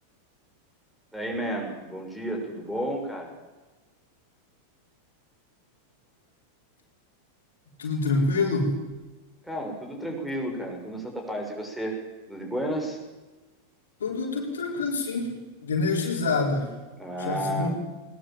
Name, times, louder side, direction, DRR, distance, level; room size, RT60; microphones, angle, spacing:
voice 1, 1.1-3.3 9.4-12.0 12.3-13.0 17.0-17.7, equal, 5° right, 2 dB, 6.4 m, -32 dB
voice 2, 7.8-8.7 14.0-15.4 15.6-16.7 17.2-17.7, left 3 dB, 65° left, 1 dB, 4.6 m, -26 dB
21.5 x 20.0 x 7.6 m, 1.2 s
figure-of-eight pair, 90°, 0 cm